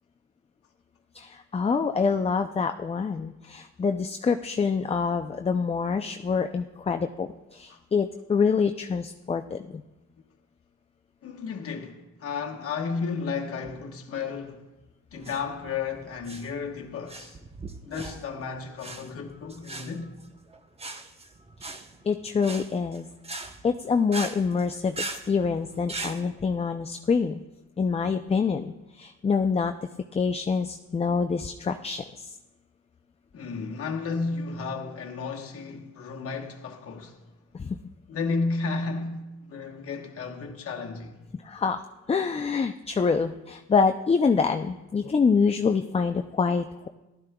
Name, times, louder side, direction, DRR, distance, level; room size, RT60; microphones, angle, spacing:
voice 1, 1.1-9.8 22.0-23.1 23.6-27.4 27.8-29.7 30.1-32.3 37.6-37.8 41.4-46.9, left 5 dB, 20° left, 0.4 m, -26 dB
voice 2, 11.2-14.7 15.1-17.4 17.8-20.1 33.3-37.2 38.1-41.2, left 4 dB, 50° left, 1.2 m, -33 dB
sound 1, 15.1-26.2, right 2 dB, 20° right, 0.8 m, -40 dB
15.5 x 12.0 x 2.3 m
cardioid pair, 90°, 30 cm